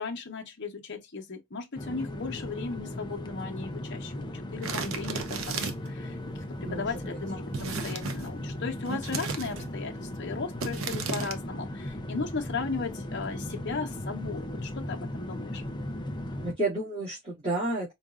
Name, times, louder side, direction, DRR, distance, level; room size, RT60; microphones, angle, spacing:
voice 1, 0.0-15.6, left 4 dB, 60° left, 1.0 m, -36 dB
sound 1, 1.8-16.5, left 1 dB, 20° left, 0.5 m, -37 dB
sound 2, 4.6-6.0 7.5-8.3 8.9-9.7 10.6-11.4, right 4 dB, 80° right, 0.7 m, -34 dB
voice 2, 6.6-7.2 16.4-17.9, right 2 dB, 30° right, 2.1 m, -31 dB
4.8 x 2.6 x 2.4 m
head